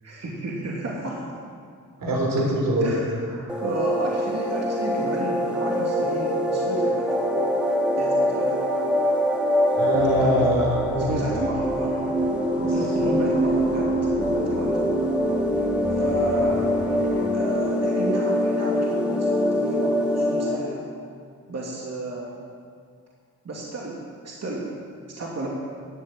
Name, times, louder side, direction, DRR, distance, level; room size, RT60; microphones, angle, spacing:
voice 1, 0.0-1.2 2.8-7.1 8.0-8.6 10.1-10.5 11.0-12.0 12.7-13.9 14.2-15.0 15.9-16.7 17.3-20.8 21.5-22.3 23.4-24.7 25.1-25.5, right 2 dB, 50° right, -3 dB, 2.7 m, -32 dB
voice 2, 2.0-2.9 9.7-11.4 12.6-12.8, right 1 dB, 80° right, -2 dB, 4.1 m, -24 dB
sound 1, 3.5-20.6, equal, 5° right, 2.4 m, -24 dB
sound 2, 9.9-17.3, left 1 dB, 45° left, 2.5 m, -36 dB
13.5 x 8.2 x 9.0 m, 2.2 s
cardioid pair, 75°, 32 cm